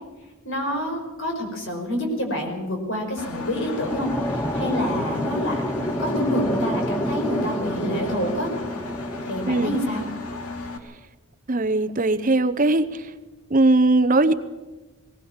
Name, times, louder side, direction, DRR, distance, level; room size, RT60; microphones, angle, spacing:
voice 1, 0.4-8.5 9.2-10.0, equal, 60° left, 3 dB, 5.4 m, -28 dB
Engine, 3.2-10.8, left 3 dB, 90° left, 2.4 m, -34 dB
sound 1, 3.4-10.5, equal, 10° left, 0.6 m, -29 dB
voice 2, 11.5-13.0 13.5-14.3, right 2 dB, 40° right, 12 dB, 0.7 m, -19 dB
19.5 x 18.5 x 7.3 m, 1.2 s
head